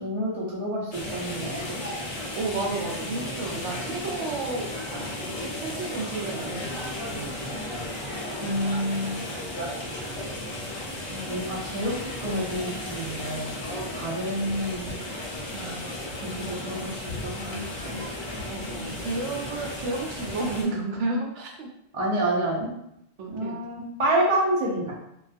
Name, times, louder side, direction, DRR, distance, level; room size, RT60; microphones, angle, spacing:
voice 1, 0.0-1.8 8.4-9.2 11.1-11.9 12.2-13.5 13.9-14.9 16.2-18.0 21.9-22.7 23.3-24.9, right 1 dB, 40° right, -4 dB, 0.4 m, -28 dB
sound 1, 0.9-20.6, left 1 dB, 70° left, 1.0 m, -34 dB
voice 2, 2.3-7.6 15.5-15.8 18.5-21.7 23.2-23.6, right 3 dB, 75° right, 0 dB, 0.9 m, -32 dB
2.3 x 2.3 x 2.5 m, 0.80 s
omnidirectional pair, 1.2 m